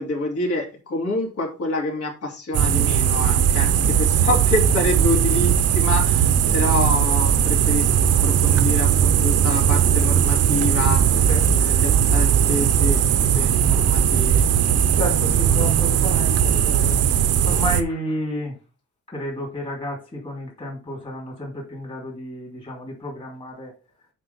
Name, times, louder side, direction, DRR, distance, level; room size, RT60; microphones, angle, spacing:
voice 1, 0.0-13.0 13.3-14.5, left 2 dB, 50° left, -1 dB, 3.1 m, -27 dB
sound 1, 2.5-17.8, right 8 dB, 55° right, 0.8 m, -18 dB
voice 2, 14.9-17.0 17.4-18.6 19.1-23.7, left 1 dB, 20° left, -2 dB, 2.9 m, -31 dB
8.3 x 5.1 x 4.1 m, 0.31 s
cardioid pair, 180°, 30 cm